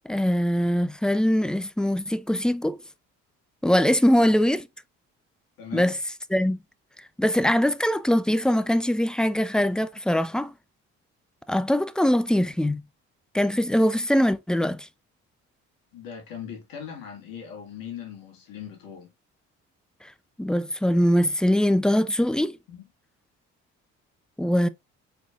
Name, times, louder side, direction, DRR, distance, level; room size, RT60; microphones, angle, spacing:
voice 1, 0.0-2.8 3.6-4.7 5.7-5.9 6.3-6.6 7.2-10.5 11.5-12.8 13.3-14.9 20.4-22.6 24.4-24.7, equal, ahead, 0.4 m, -22 dB
voice 2, 5.6-6.0 15.9-19.1 22.7-22.9, left 8 dB, 70° left, 1.9 m, -40 dB
4.3 x 4.2 x 2.4 m
hypercardioid pair, 50°, 36 cm